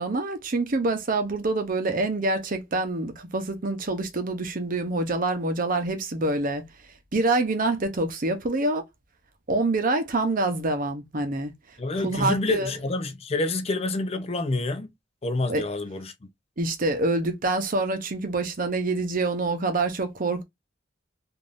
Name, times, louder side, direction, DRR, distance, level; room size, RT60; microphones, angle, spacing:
voice 1, 0.0-6.6 7.1-8.8 9.5-11.5 11.9-12.7 15.5-15.7 16.6-20.4, right 2 dB, 50° right, 0.7 m, -26 dB
voice 2, 11.8-14.9 15.2-16.1, left 2 dB, 35° left, 0.5 m, -27 dB
3.5 x 2.6 x 2.5 m
head